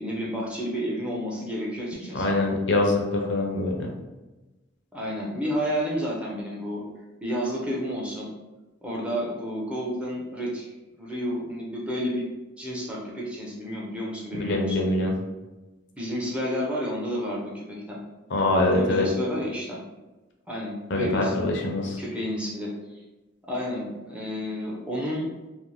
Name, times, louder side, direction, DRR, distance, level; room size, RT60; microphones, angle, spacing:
voice 1, 0.0-2.3 4.9-6.8 7.2-8.3 8.8-10.7 11.0-12.3 12.6-14.9 16.0-18.0 18.7-19.8 20.5-21.3 22.0-23.0 23.5-25.3, equal, 5° right, -4 dB, 0.4 m, -31 dB
voice 2, 2.1-3.9 14.3-15.1 18.3-19.1 20.9-22.0, left 2 dB, 55° left, 1 dB, 0.5 m, -24 dB
2.5 x 2.0 x 3.1 m, 1.1 s
head